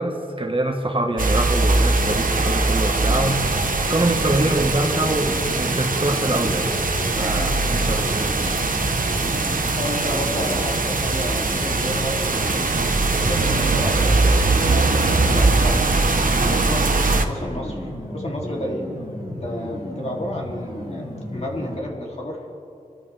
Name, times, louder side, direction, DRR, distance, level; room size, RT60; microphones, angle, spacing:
voice 1, 0.0-3.4 3.9-6.7 7.2-8.3, right 1 dB, 35° right, 3 dB, 1.6 m, -24 dB
sound 1, 1.2-17.2, right 3 dB, 60° right, 1.1 m, -21 dB
sound 2, 2.9-21.8, left 1 dB, 80° left, 4.4 m, -33 dB
voice 2, 9.8-12.2 12.5-12.7 13.1-16.0 16.4-18.8 19.3-22.6, left 1 dB, 45° left, -2 dB, 3.1 m, -32 dB
25.5 x 13.0 x 3.5 m, 2.7 s
cardioid pair, 45°, 16 cm